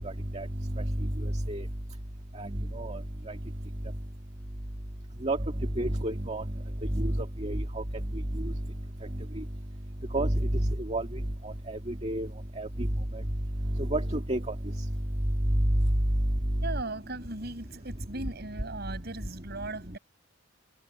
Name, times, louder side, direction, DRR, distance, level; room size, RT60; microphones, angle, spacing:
voice 1, 2.4-3.0 5.2-5.4 5.8-6.4 6.9-7.6 10.1-10.4 10.9-11.1 11.7-12.3 12.6-12.7 13.9-14.5, right 1 dB, 35° right, 1.9 m, -30 dB
voice 2, 16.6-20.0, right 2 dB, 55° right, 6.6 m, -38 dB
head